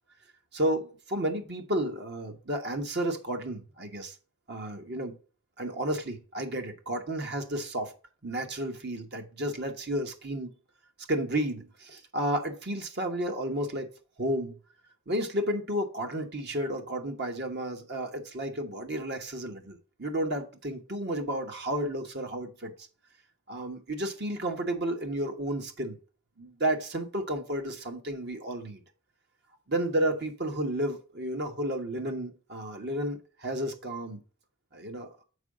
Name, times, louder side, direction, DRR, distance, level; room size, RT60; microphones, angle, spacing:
voice 1, 0.5-4.1 4.5-5.1 5.6-7.9 8.2-10.5 11.1-13.9 14.2-14.6 15.1-22.7 23.5-26.0 26.4-28.8 29.7-34.2 34.7-35.1, right 1 dB, 50° right, 1.2 m, -32 dB
7.0 x 4.7 x 5.0 m
head